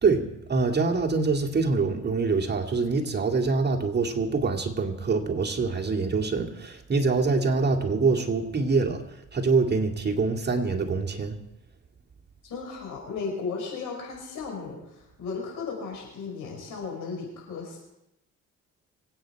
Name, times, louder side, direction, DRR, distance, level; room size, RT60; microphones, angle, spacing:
voice 1, 0.0-9.0 9.3-11.4, right 4 dB, 35° right, 1 dB, 2.1 m, -25 dB
voice 2, 12.4-17.8, left 4 dB, 90° left, 0 dB, 5.7 m, -35 dB
25.0 x 8.8 x 4.6 m, 0.87 s
cardioid pair, 90°, 30 cm